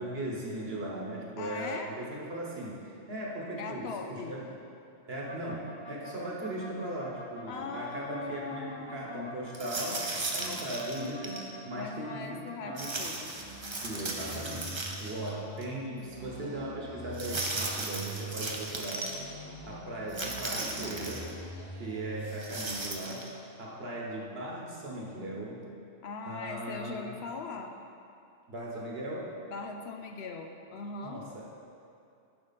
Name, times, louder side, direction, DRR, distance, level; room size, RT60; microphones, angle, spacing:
voice 1, 0.0-4.4 5.1-10.1 10.3-13.0 13.8-19.2 19.6-21.3 21.8-23.3 23.6-25.6 26.2-27.1 28.5-29.3 31.0-31.6, right 1 dB, 55° right, -3 dB, 1.4 m, -38 dB
voice 2, 1.4-1.9 3.6-4.4 7.5-9.3 11.8-13.3 15.3-16.1 26.0-27.7 29.5-31.2, left 4 dB, 65° left, 4 dB, 0.8 m, -40 dB
sound 1, 5.3-12.9 13.3-15.5 15.9-18.5 19.0-22.4, right 2 dB, 10° left, 0.7 m, -45 dB
sound 2, 9.5-11.5 12.8-15.3 15.6-15.7 17.1-19.2 20.1-21.3 22.3-23.3, right 2 dB, 30° right, 0.6 m, -36 dB
10.5 x 5.0 x 4.1 m, 2.6 s
omnidirectional pair, 1.2 m